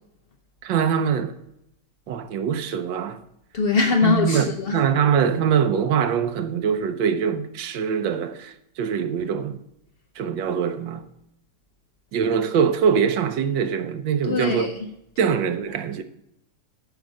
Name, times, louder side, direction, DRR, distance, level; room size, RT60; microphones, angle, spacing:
voice 1, 0.6-1.3 2.1-3.2 4.0-9.6 10.2-11.1 12.1-14.7 15.2-16.0, right 7 dB, 85° right, 1.5 m, -23 dB
voice 2, 3.5-4.8 14.3-14.7 15.2-15.3, left 4 dB, 60° left, 0.6 m, -22 dB
11.5 x 4.9 x 6.3 m
omnidirectional pair, 2.0 m